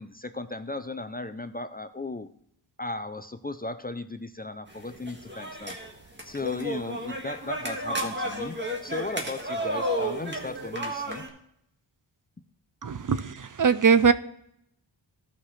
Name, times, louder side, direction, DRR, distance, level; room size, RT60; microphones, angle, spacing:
voice 1, 0.0-2.3 2.8-5.8 6.2-11.2, left 2 dB, 20° left, 11 dB, 0.5 m, -36 dB
sound 1, 4.7-11.3, equal, 25° right, 1.8 m, -32 dB
voice 2, 12.8-14.1, right 6 dB, 45° right, 14 dB, 0.5 m, -21 dB
15.0 x 5.7 x 3.2 m, 0.73 s
wide cardioid pair, 75°, 47 cm